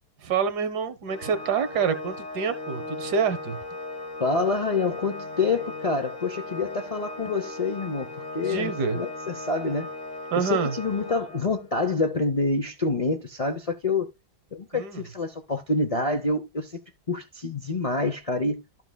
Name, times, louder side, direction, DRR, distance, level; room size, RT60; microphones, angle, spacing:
voice 1, 0.2-3.6 8.4-9.0 10.3-10.7 14.7-15.0, right 6 dB, 75° right, 1.5 m, -27 dB
Organ, 1.1-11.8, left 2 dB, 85° left, 2.5 m, -38 dB
voice 2, 4.2-9.9 10.3-14.1 14.5-16.8 17.1-18.8, left 3 dB, 70° left, 0.3 m, -27 dB
12.5 x 5.8 x 2.2 m
omnidirectional pair, 1.8 m